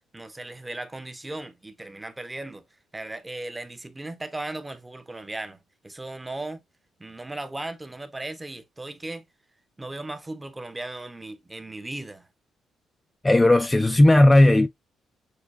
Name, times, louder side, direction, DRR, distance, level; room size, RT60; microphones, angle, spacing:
voice 1, 0.1-2.6 2.9-5.6 5.8-6.6 7.0-9.3 9.8-12.3, right 2 dB, 15° right, 0.7 m, -37 dB
voice 2, 13.2-14.7, left 1 dB, 15° left, 0.3 m, -15 dB
6.5 x 2.2 x 2.6 m
cardioid pair, 90°, 0 cm